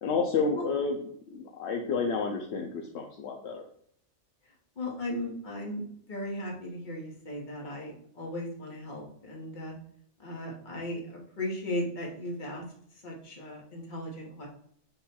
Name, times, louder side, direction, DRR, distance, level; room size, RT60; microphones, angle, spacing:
voice 1, 0.0-1.0 1.3-3.6, left 4 dB, 75° left, 1 dB, 0.8 m, -30 dB
voice 2, 4.8-5.8 6.1-9.7 10.2-12.6 13.0-14.5, left 1 dB, 45° left, -2 dB, 1.2 m, -36 dB
5.2 x 2.3 x 4.2 m, 0.62 s
omnidirectional pair, 1.2 m